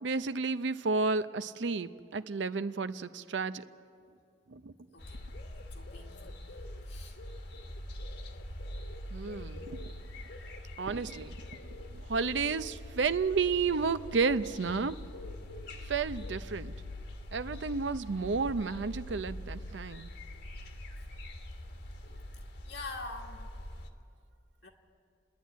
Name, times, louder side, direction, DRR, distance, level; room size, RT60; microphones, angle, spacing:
voice 1, 0.0-3.6 4.5-4.7 9.1-9.9 10.8-11.4 11.9-15.0 15.9-16.7 17.3-20.1, right 4 dB, 85° right, 13 dB, 0.6 m, -32 dB
sound 1, 5.0-23.9, left 1 dB, 65° left, 1.5 m, -44 dB
voice 2, 5.7-7.2 22.0-22.2 22.7-23.5 24.6-24.7, left 3 dB, 85° left, -2 dB, 2.0 m, -45 dB
29.0 x 10.5 x 9.3 m, 2.4 s
head